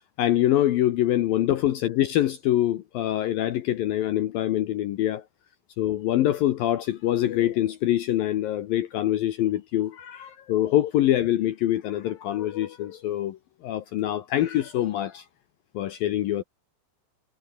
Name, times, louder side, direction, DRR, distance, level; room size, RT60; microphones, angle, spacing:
voice 1, 0.2-5.2 5.8-13.4 13.6-15.2 15.7-16.4, left 13 dB, 70° left, 2.4 m, -24 dB
omnidirectional pair, 5.1 m